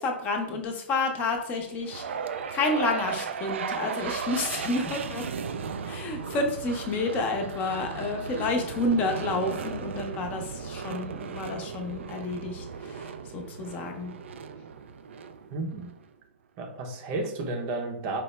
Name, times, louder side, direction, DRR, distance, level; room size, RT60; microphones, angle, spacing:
voice 1, 0.0-2.0 2.5-5.3 5.9-14.1, left 2 dB, 30° left, 0.7 m, -30 dB
sound 1, 1.8-16.0, right 6 dB, 80° right, 0.3 m, -36 dB
voice 2, 15.5-15.9 16.6-18.2, right 2 dB, 40° right, 0.7 m, -32 dB
4.6 x 2.1 x 3.2 m
hypercardioid pair, 125°, 6 cm